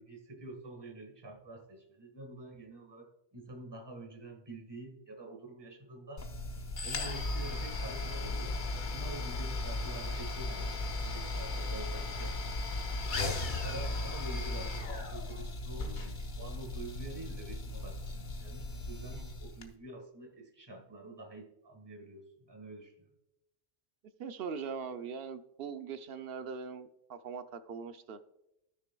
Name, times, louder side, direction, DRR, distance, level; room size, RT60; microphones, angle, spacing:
voice 1, 0.0-6.3 6.8-8.5 8.9-12.4 13.2-23.1, right 2 dB, 25° right, 2 dB, 1.5 m, -47 dB
sound 1, 6.2-19.7, left 2 dB, 50° left, 1.0 m, -36 dB
voice 2, 24.2-28.2, right 6 dB, 65° right, 10 dB, 0.8 m, -41 dB
15.0 x 6.4 x 2.2 m, 0.86 s
omnidirectional pair, 1.1 m